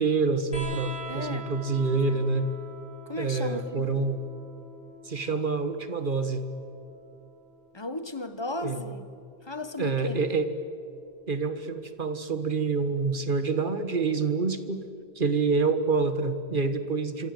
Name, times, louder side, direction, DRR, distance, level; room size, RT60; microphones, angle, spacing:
voice 1, 0.0-2.5 3.2-4.2 5.0-6.4 8.6-8.9 9.8-10.5 11.3-14.9 15.1-17.3, right 4 dB, 55° right, 10 dB, 1.7 m, -27 dB
sound 1, 0.5-7.6 9.0-9.8 11.1-11.2, right 3 dB, 60° left, 7.7 m, -44 dB
voice 2, 1.1-1.5 2.0-2.2 3.1-3.9 7.7-9.1 9.4-10.2, left 2 dB, 25° left, 10 dB, 1.4 m, -35 dB
26.5 x 25.0 x 7.9 m, 2.4 s
omnidirectional pair, 1.0 m